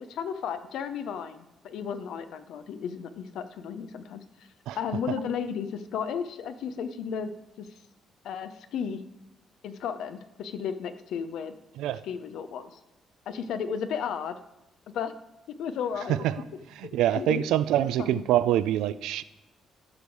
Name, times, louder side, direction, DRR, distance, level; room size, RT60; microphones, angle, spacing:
voice 1, 0.0-4.2 4.8-7.7 8.2-9.0 9.6-11.5 12.0-12.8 13.3-14.4 14.9-15.1 15.6-16.2 16.8-17.4 17.7-18.2, left 7 dB, 80° left, 10 dB, 0.7 m, -34 dB
voice 2, 16.8-19.2, right 12 dB, 90° right, 15 dB, 0.4 m, -25 dB
14.0 x 5.3 x 4.7 m, 0.93 s
cardioid pair, 90°, 0 cm